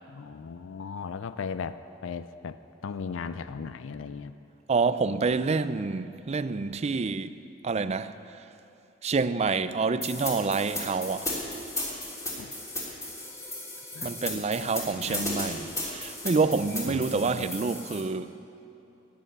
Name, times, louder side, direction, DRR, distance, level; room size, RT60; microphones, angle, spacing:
voice 1, 0.1-2.6 2.8-4.3 12.4-12.5 13.9-15.2 16.9-17.5, left 5 dB, 80° left, 0.4 m, -38 dB
voice 2, 4.7-8.5 9.0-11.3 14.0-18.5, right 4 dB, 35° right, 0.4 m, -28 dB
sound 1, 10.0-18.0, left 1 dB, 15° left, 3.1 m, -35 dB
15.5 x 10.0 x 6.7 m
head